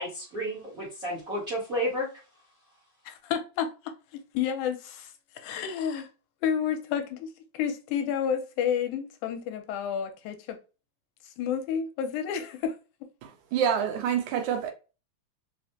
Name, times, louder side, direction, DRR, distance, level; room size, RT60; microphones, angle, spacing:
voice 1, 0.0-2.1, equal, 55° right, 0.9 m, -31 dB
voice 2, 3.1-6.1 6.4-10.6 11.4-13.1, left 8 dB, 80° left, 2.1 m, -31 dB
voice 3, 13.2-14.7, right 8 dB, 80° right, 2.1 m, -27 dB
5.0 x 2.1 x 2.7 m
omnidirectional pair, 3.6 m